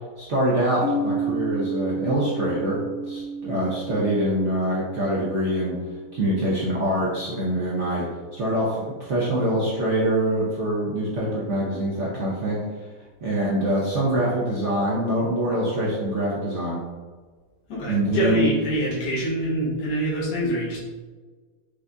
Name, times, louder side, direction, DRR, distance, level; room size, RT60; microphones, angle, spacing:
voice 1, 0.2-2.8 3.0-5.8 6.1-8.1 8.3-12.8 13.2-16.8 17.9-18.5, right 1 dB, 55° right, -6 dB, 0.8 m, -24 dB
sound 1, 0.8-8.6, right 3 dB, 75° left, 0.7 m, -33 dB
voice 2, 17.7-20.8, right 1 dB, 60° left, -6 dB, 1.5 m, -25 dB
5.1 x 2.5 x 3.4 m, 1.4 s
omnidirectional pair, 2.2 m